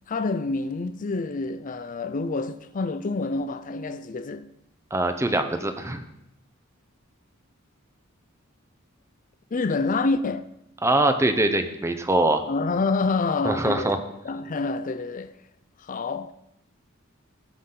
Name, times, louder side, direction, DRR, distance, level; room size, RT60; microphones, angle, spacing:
voice 1, 0.1-4.5 9.5-10.5 12.5-13.9 14.2-15.4 15.9-16.3, left 3 dB, 40° left, 0.5 m, -27 dB
voice 2, 4.9-6.0 10.8-12.4 13.4-14.0, right 2 dB, 15° right, 0.7 m, -23 dB
15.5 x 6.0 x 3.8 m
head